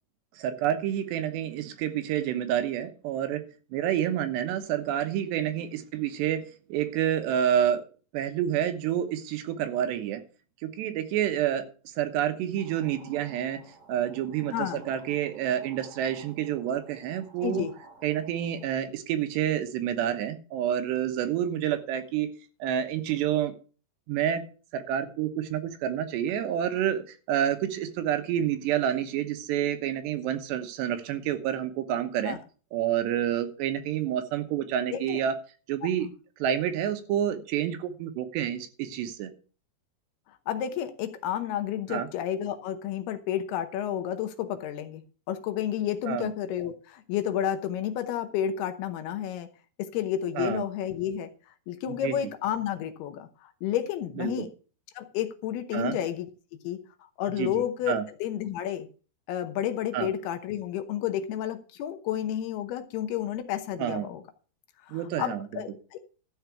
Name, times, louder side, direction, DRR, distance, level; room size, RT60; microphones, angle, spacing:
voice 1, 0.4-3.4 3.7-6.4 6.7-7.8 8.1-10.2 10.6-13.6 13.9-17.7 18.0-22.3 22.6-23.5 24.1-24.4 24.7-32.4 32.7-35.3 35.7-36.1 36.4-39.3 41.9-42.1 46.1-46.3 50.4-50.6 51.9-52.1 54.2-54.3 55.7-56.0 57.4-58.0 59.9-60.1 63.8-64.1 64.9-65.5, right 10 dB, 85° right, 8 dB, 3.3 m, -28 dB
sound 1, 12.6-18.7, right 3 dB, 45° right, 8.0 m, -54 dB
voice 2, 17.4-17.7 32.3-32.4 34.9-35.2 35.8-35.9 40.5-49.5 49.8-51.3 51.7-54.5 55.0-56.3 56.6-56.8 57.2-58.9 59.3-64.2 64.9-66.0, left 10 dB, 75° left, 9 dB, 2.8 m, -31 dB
13.0 x 4.7 x 8.1 m, 0.38 s
omnidirectional pair, 4.8 m